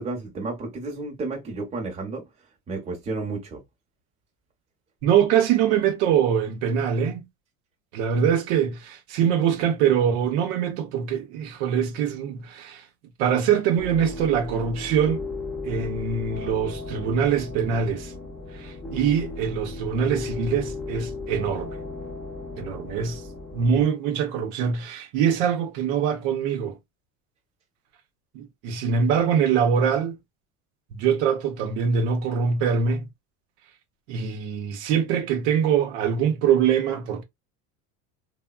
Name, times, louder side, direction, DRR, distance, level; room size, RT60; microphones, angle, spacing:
voice 1, 0.0-2.2 2.7-3.6, right 3 dB, 15° right, 0.8 m, -32 dB
voice 2, 5.0-7.3 7.9-12.9 13.2-15.2 15.6-18.1 18.5-21.7 22.6-23.2 23.5-26.8 28.3-30.2 30.9-33.1 34.1-37.2, right 7 dB, 65° right, 0.7 m, -23 dB
sound 1, 13.8-23.9, left 3 dB, 5° left, 0.5 m, -35 dB
3.3 x 2.1 x 2.2 m
cardioid pair, 165°, 36 cm